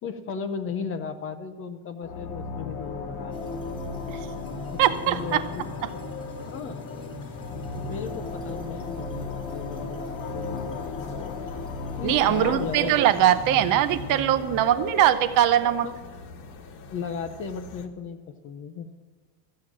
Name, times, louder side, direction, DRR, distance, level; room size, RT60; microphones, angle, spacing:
voice 1, 0.0-3.6 4.1-4.2 4.7-6.0 6.5-6.9 7.7-11.2 12.0-12.9 15.8-15.9 16.9-18.9, left 6 dB, 30° left, 10 dB, 0.6 m, -36 dB
sound 1, 2.0-15.4, left 5 dB, 90° left, 2.2 m, -37 dB
sound 2, 3.2-17.9, left 3 dB, 50° left, 1.4 m, -44 dB
sound 3, 3.3-14.8, left 1 dB, 10° left, 1.3 m, -40 dB
voice 2, 4.8-5.4 12.0-15.9, right 11 dB, 40° right, 11 dB, 0.6 m, -21 dB
14.0 x 7.6 x 7.4 m, 1.5 s
cardioid pair, 170°, 48 cm